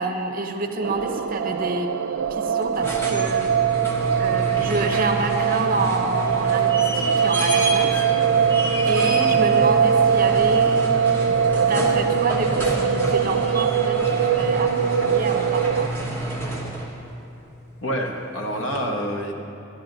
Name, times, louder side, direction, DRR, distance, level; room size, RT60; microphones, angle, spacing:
voice 1, 0.0-1.9 2.3-3.5 4.2-8.0 8.9-10.8 11.6-15.9, right 2 dB, 45° right, 5 dB, 0.7 m, -28 dB
sound 1, 0.8-15.9, right 7 dB, 90° right, 0.4 m, -22 dB
sound 2, 2.6-17.0 18.7-18.8, right 2 dB, 10° left, 1.1 m, -28 dB
voice 2, 17.8-19.3, equal, 75° left, 2 dB, 1.2 m, -27 dB
12.5 x 11.0 x 3.9 m, 2.7 s
head